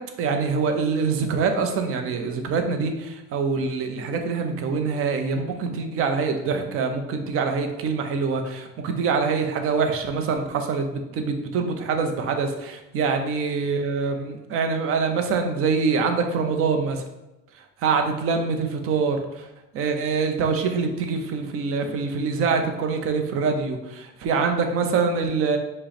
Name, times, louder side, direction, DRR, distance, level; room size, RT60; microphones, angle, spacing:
voice 1, 0.2-17.0 17.8-19.5 19.7-25.6, right 5 dB, 45° right, 5 dB, 0.6 m, -25 dB
5.3 x 2.1 x 4.2 m, 0.97 s
cardioid pair, 135°, 31 cm